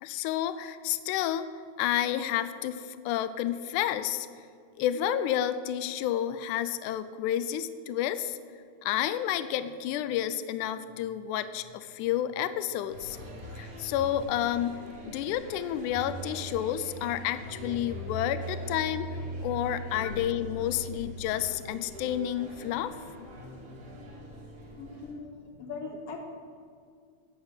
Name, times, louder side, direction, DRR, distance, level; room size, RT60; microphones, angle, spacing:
voice 1, 0.0-1.5 1.8-4.3 4.8-8.4 8.8-13.2 13.6-14.8 15.1-19.1 19.4-23.0, left 11 dB, 90° left, 13 dB, 2.1 m, -30 dB
sound 1, 12.9-25.1, equal, 50° right, 3.4 m, -41 dB
voice 2, 24.8-26.2, left 4 dB, 60° left, 2 dB, 2.3 m, -40 dB
11.5 x 7.3 x 8.6 m, 2.2 s
omnidirectional pair, 3.5 m